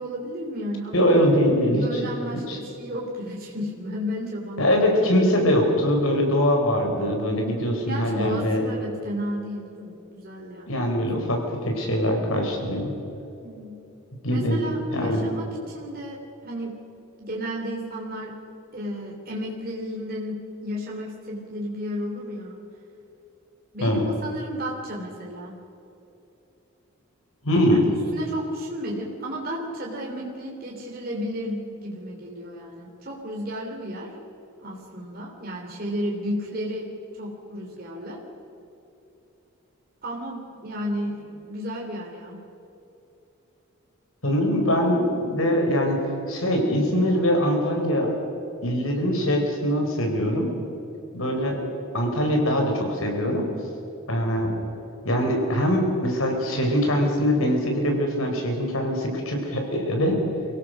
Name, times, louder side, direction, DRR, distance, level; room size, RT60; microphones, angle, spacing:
voice 1, 0.0-1.1 1.7-4.9 7.9-10.8 11.4-11.5 13.4-13.8 14.3-16.8 17.2-18.4 18.7-22.6 23.7-25.6 27.7-27.8 28.1-34.1 34.6-36.9 37.2-38.2 40.0-42.4, equal, 45° right, -2 dB, 3.0 m, -33 dB
voice 2, 0.9-2.0 2.3-2.6 4.6-8.6 10.7-12.9 14.2-14.6 14.9-15.2 23.8-24.1 27.4-27.8 44.2-46.0 46.3-48.2 48.6-50.5 51.1-51.6 51.9-53.4 54.1-54.5 55.0-60.2, equal, 80° left, 2 dB, 4.4 m, -22 dB
25.0 x 16.5 x 6.4 m, 2.9 s
head